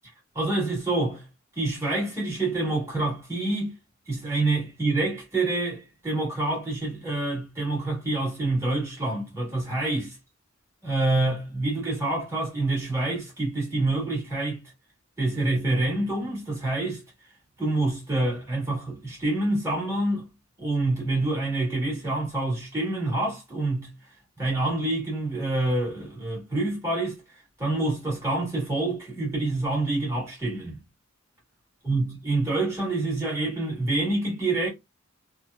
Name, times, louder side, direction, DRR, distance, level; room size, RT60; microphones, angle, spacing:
voice 1, 0.3-1.3 1.6-3.7 4.1-10.2 10.8-14.6 15.2-17.0 17.6-20.3 20.6-23.9 24.4-27.2 27.6-30.8 31.8-34.7, right 2 dB, 15° right, 1.6 m, -27 dB
3.2 x 2.1 x 2.3 m
head